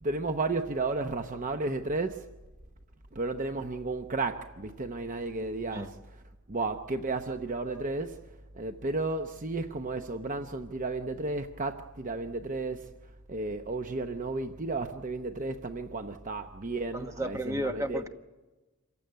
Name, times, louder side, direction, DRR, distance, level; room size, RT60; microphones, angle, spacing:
voice 1, 0.0-2.3 3.1-6.0 6.5-8.2 8.6-12.9 13.3-18.1, right 3 dB, 35° right, 0.8 m, -33 dB
voice 2, 16.9-18.1, right 1 dB, 15° right, 1.2 m, -33 dB
27.0 x 15.5 x 9.3 m
head